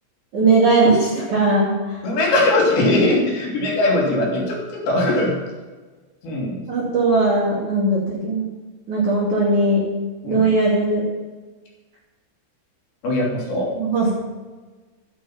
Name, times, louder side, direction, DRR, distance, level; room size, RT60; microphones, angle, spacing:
voice 1, 0.3-1.7 6.7-8.5 8.9-9.9 10.3-11.1 13.8-14.1, right 2 dB, 40° right, -6 dB, 3.9 m, -18 dB
voice 2, 2.0-5.3 6.2-6.6 10.2-10.4 13.0-13.7, left 2 dB, 55° left, 0 dB, 4.5 m, -20 dB
12.5 x 10.5 x 5.8 m, 1.3 s
omnidirectional pair, 5.8 m